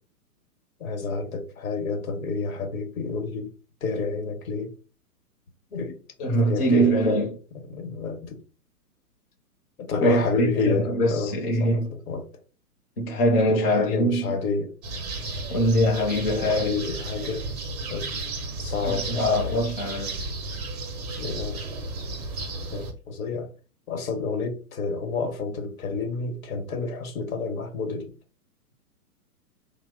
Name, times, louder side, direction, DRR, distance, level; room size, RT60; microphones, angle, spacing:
voice 1, 0.8-3.5 3.8-4.7 5.7-6.0 6.5-7.2 7.7-8.4 9.8-11.3 11.6-11.8 12.1-12.2 13.5-14.7 16.4-17.5 17.9-18.1 18.6-19.6 21.2-21.6 22.7-23.5 23.9-28.1, left 4 dB, 60° left, 1.0 m, -29 dB
voice 2, 6.2-7.4 10.0-11.9 13.0-14.3 15.5-16.8 18.8-20.3, right 1 dB, 40° left, 0.7 m, -23 dB
sound 1, 14.8-22.9, right 2 dB, 25° right, 0.5 m, -33 dB
3.0 x 2.0 x 3.6 m
hypercardioid pair, 130°, 46 cm